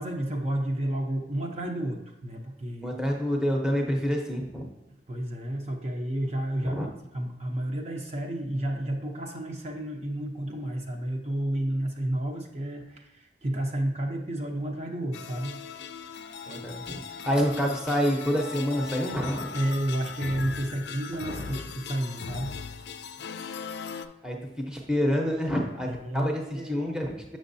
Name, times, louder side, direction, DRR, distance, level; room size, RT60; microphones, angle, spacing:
voice 1, 0.0-2.9 5.1-6.8 7.1-15.9 19.5-22.5 25.8-26.8, right 1 dB, 35° right, 1 dB, 0.7 m, -31 dB
voice 2, 2.8-4.6 6.6-6.9 16.5-19.5 21.3-21.5 24.2-24.4 24.7-25.9 26.1-27.4, equal, 5° right, 0 dB, 0.8 m, -27 dB
sound 1, 15.1-24.1, left 6 dB, 70° left, 0.4 m, -39 dB
7.2 x 6.3 x 2.7 m, 1.0 s
head